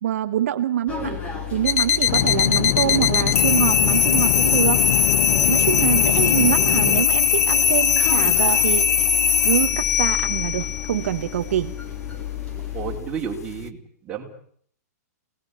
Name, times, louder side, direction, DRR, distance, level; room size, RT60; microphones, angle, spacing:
voice 1, 0.0-1.2 1.5-4.9 5.5-9.0 9.4-11.7, right 11 dB, 55° right, 8 dB, 1.2 m, -25 dB
sound 1, 0.9-13.0, left 9 dB, 15° left, 3.5 m, -32 dB
sound 2, 1.7-13.7, left 7 dB, 65° left, 1.5 m, -21 dB
sound 3, 2.1-7.0, left 10 dB, 45° left, 1.3 m, -25 dB
voice 2, 12.7-14.2, right 7 dB, 10° right, -1 dB, 4.0 m, -31 dB
27.0 x 19.5 x 9.9 m, 0.64 s
hypercardioid pair, 170°, 9 cm